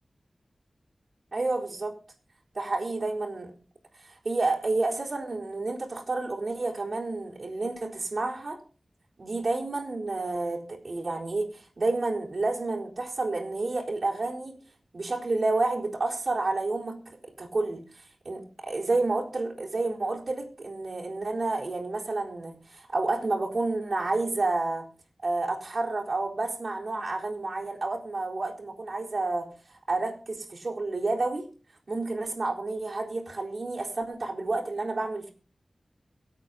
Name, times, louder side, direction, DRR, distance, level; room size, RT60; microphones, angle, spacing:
voice 1, 1.3-2.0 2.5-3.5 4.0-8.6 9.2-14.6 14.9-24.9 25.2-29.5 29.9-31.5 31.9-35.3, right 2 dB, 60° right, 4.2 m, -30 dB
24.0 x 8.3 x 3.9 m
wide cardioid pair, 65°, 0 cm